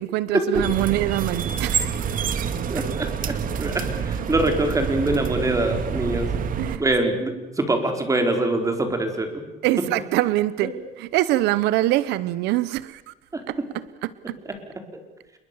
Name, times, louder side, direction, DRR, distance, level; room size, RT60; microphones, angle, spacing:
voice 1, 0.0-2.2 6.6-6.8 9.6-13.1 13.5-13.6 14.0-14.4, right 16 dB, 90° right, 0.8 m, -24 dB
sound 1, 0.5-6.8, right 7 dB, 55° right, 2.0 m, -27 dB
voice 2, 2.7-6.3 6.8-9.3 10.6-10.7 13.3-13.4, right 2 dB, 20° right, 4.7 m, -24 dB
27.5 x 22.0 x 7.2 m
cardioid pair, 110°, 17 cm